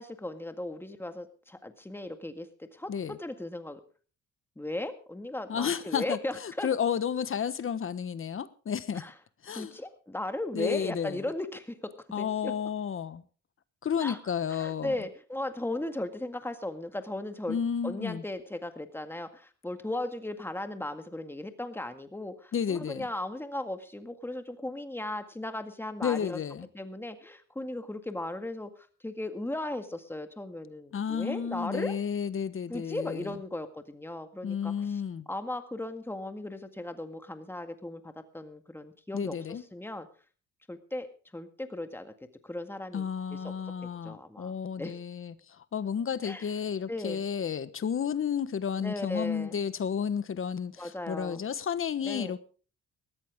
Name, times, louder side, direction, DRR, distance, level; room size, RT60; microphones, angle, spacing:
voice 1, 0.0-3.8 4.6-6.7 8.9-9.1 9.5-11.9 12.2-12.5 14.0-14.2 14.6-17.6 17.8-26.4 26.7-32.0 32.7-35.0 35.3-39.4 39.7-40.1 40.7-41.1 41.3-42.1 42.4-43.5 44.0-44.9 46.2-46.5 46.9-47.2 48.8-49.5 50.8-51.4 52.0-52.4, left 1 dB, 5° left, 8 dB, 1.9 m, -37 dB
voice 2, 5.5-9.0 9.4-9.8 10.5-11.2 12.1-13.2 13.8-15.0 17.5-18.2 22.5-23.1 26.0-26.7 30.9-33.4 34.4-35.3 39.1-39.6 42.9-52.4, left 7 dB, 45° left, 15 dB, 1.2 m, -32 dB
19.0 x 13.5 x 3.6 m, 0.39 s
cardioid pair, 90°, 30 cm